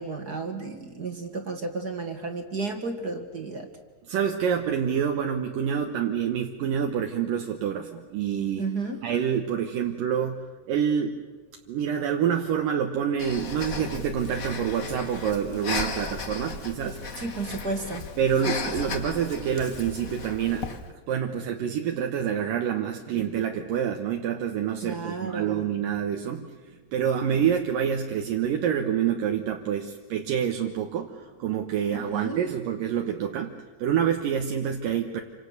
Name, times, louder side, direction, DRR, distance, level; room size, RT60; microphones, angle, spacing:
voice 1, 0.0-3.7 8.5-9.0 17.2-18.1 18.4-18.9 24.8-25.6 31.9-32.4, right 3 dB, 35° right, 5 dB, 2.1 m, -33 dB
voice 2, 4.1-8.6 9.0-11.2 11.7-17.0 18.2-20.7 21.1-26.5 26.9-35.2, right 8 dB, 75° right, 3 dB, 2.9 m, -27 dB
Breathing, 13.2-20.9, left 4 dB, 45° left, 1.0 m, -35 dB
28.0 x 26.0 x 6.7 m, 1.4 s
omnidirectional pair, 4.0 m